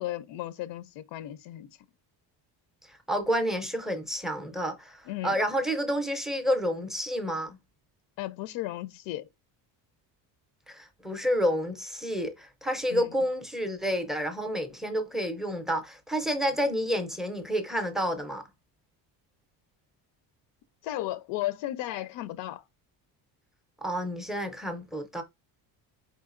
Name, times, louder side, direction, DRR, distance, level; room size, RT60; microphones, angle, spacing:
voice 1, 0.0-1.8 5.1-5.4 8.2-9.3 12.9-13.1 20.8-22.6, left 15 dB, 75° left, 0.5 m, -35 dB
voice 2, 2.9-7.6 10.7-18.4 23.8-25.2, equal, ahead, 0.4 m, -29 dB
4.7 x 3.8 x 2.4 m
cardioid pair, 150°, 43 cm